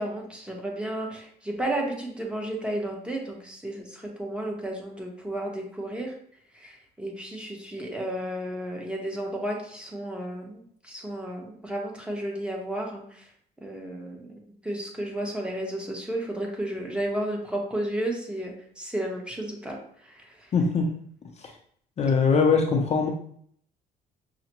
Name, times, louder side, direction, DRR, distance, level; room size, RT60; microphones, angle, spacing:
voice 1, 0.0-6.1 6.5-13.3 13.6-14.3 14.6-19.8 20.0-20.5, right 1 dB, 5° right, 0 dB, 0.9 m, -33 dB
voice 2, 20.5-20.9 22.0-23.1, left 5 dB, 40° left, 2 dB, 0.5 m, -21 dB
5.6 x 2.1 x 2.9 m, 0.62 s
cardioid pair, 110°, 17 cm